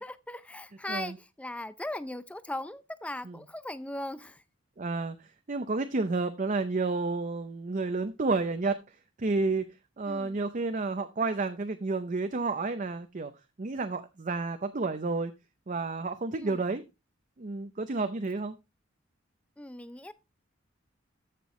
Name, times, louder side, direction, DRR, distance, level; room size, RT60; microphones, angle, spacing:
voice 1, 0.0-4.4 10.1-10.4 16.3-16.6 19.6-20.1, left 1 dB, 5° left, 0.5 m, -39 dB
voice 2, 4.8-5.2 5.5-8.8 9.2-9.6 10.0-13.3 13.6-15.3 15.7-16.8 17.4-18.5, right 3 dB, 40° right, 0.6 m, -30 dB
14.0 x 6.0 x 3.1 m
head